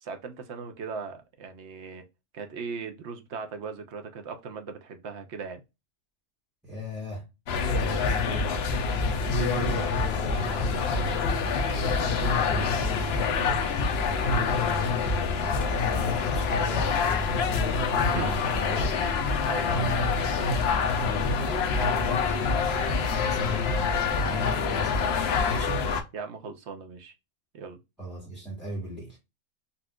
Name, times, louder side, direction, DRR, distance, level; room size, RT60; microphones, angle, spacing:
voice 1, 0.0-2.0 2.3-5.6 18.1-18.4 19.4-19.7 26.1-27.1 27.5-27.8, right 5 dB, 65° right, 0.9 m, -38 dB
voice 2, 6.6-7.2 7.8-8.5 9.2-13.6 14.1-18.9 19.7-23.8 24.1-25.8 28.0-29.2, left 2 dB, ahead, 1.1 m, -34 dB
sound 1, 7.5-26.0, left 5 dB, 65° left, 0.8 m, -26 dB
4.1 x 2.4 x 2.2 m
omnidirectional pair, 1.3 m